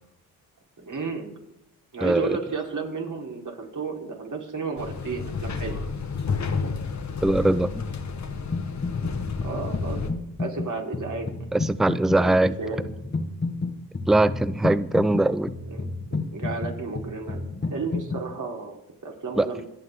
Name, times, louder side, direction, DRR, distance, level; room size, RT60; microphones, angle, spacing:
voice 1, 0.8-1.3 1.9-5.9 9.4-10.0 10.4-11.3 12.2-12.9 15.7-15.8 16.1-18.8 19.0-19.7, right 4 dB, 45° right, 0 dB, 4.0 m, -32 dB
voice 2, 2.0-2.4 7.2-7.8 11.5-12.6 14.1-15.5 19.4-19.5, right 2 dB, ahead, 16 dB, 0.6 m, -21 dB
sound 1, 4.8-10.1, left 5 dB, 40° left, 1.7 m, -31 dB
sound 2, 8.5-9.1 9.4-18.2, left 3 dB, 25° left, 1.7 m, -31 dB
25.0 x 8.9 x 3.8 m, 0.87 s
supercardioid pair, 55°, 43 cm